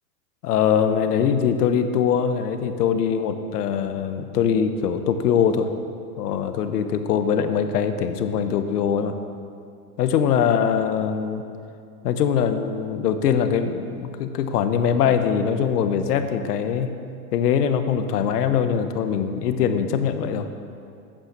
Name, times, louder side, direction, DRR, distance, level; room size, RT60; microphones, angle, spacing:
voice 1, 0.4-5.7 6.2-9.2 10.0-11.4 12.0-16.9 17.3-20.5, left 7 dB, 80° left, 8 dB, 1.2 m, -22 dB
13.5 x 8.9 x 6.7 m, 2.4 s
supercardioid pair, 155°, 46 cm